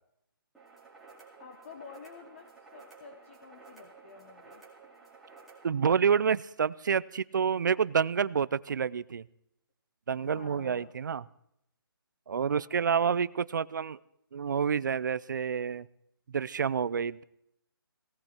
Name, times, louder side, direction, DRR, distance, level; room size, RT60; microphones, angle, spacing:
sound 1, 0.5-5.7, right 4 dB, ahead, 2.3 m, -54 dB
voice 1, 1.4-4.7 10.2-11.0 12.5-12.7, left 5 dB, 30° left, 5 dB, 1.1 m, -50 dB
voice 2, 5.6-9.2 10.1-11.3 12.3-14.0 14.3-15.9 16.3-17.2, right 6 dB, 50° right, 18 dB, 0.5 m, -28 dB
19.0 x 17.0 x 4.4 m, 0.76 s
hypercardioid pair, 170°, 13 cm